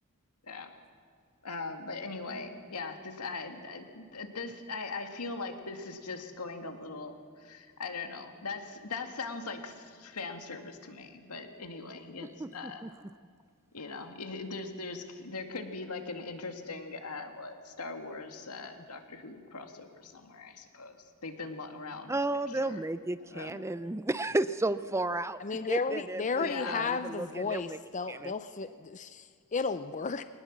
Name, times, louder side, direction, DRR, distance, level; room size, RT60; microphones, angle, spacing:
voice 1, 1.4-12.9 13.7-22.2 22.5-22.9 23.2-23.7 26.4-26.9, left 3 dB, 85° left, 5 dB, 2.1 m, -40 dB
voice 2, 12.4-12.9 22.1-25.4 25.7-27.8 28.1-28.3, right 2 dB, 10° right, 14 dB, 0.5 m, -33 dB
voice 3, 25.4-30.2, left 4 dB, 35° left, 11 dB, 0.5 m, -33 dB
22.5 x 19.5 x 7.4 m, 2.1 s
head